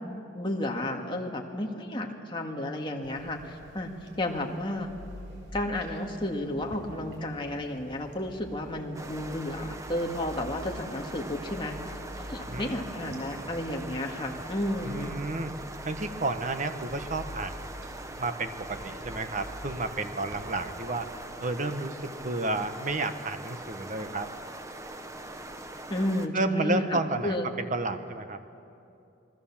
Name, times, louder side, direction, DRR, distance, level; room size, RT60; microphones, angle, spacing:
voice 1, 0.0-3.9 4.2-4.9 5.5-15.1 25.9-27.5, left 1 dB, 25° left, 1 dB, 2.1 m, -32 dB
sound 1, 3.0-20.4, equal, 65° right, 5.5 m, -46 dB
sound 2, 8.9-26.3, right 2 dB, 15° right, 1.0 m, -42 dB
voice 2, 12.5-12.8 14.8-15.5 15.8-17.7 18.2-21.1 21.4-24.3 26.3-28.4, right 2 dB, 40° right, 8 dB, 1.3 m, -31 dB
28.0 x 21.5 x 7.4 m, 2.7 s
head